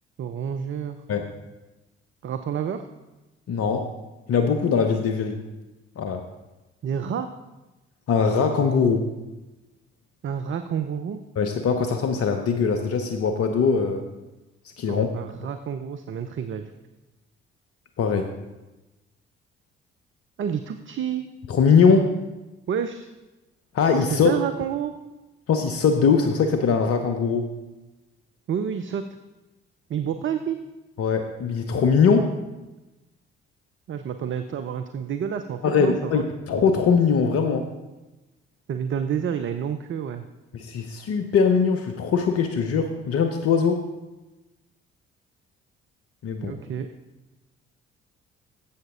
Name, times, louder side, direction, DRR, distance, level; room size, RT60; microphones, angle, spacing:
voice 1, 0.2-1.0 2.2-2.8 6.8-7.3 10.2-11.2 14.9-16.7 20.4-21.2 22.7-23.1 24.1-24.9 28.5-29.0 29.9-30.6 33.9-36.3 38.7-40.2 46.4-46.9, right 8 dB, 40° right, 8 dB, 0.6 m, -29 dB
voice 2, 3.5-3.9 4.3-5.4 6.0-6.2 8.1-9.1 11.4-14.0 14.8-15.1 18.0-18.3 21.5-22.1 23.7-24.3 25.5-27.5 31.0-32.3 35.6-37.7 40.5-43.8 46.2-46.5, left 5 dB, 50° left, 6 dB, 0.8 m, -21 dB
11.0 x 7.8 x 3.7 m, 1.1 s
hypercardioid pair, 45°, 30 cm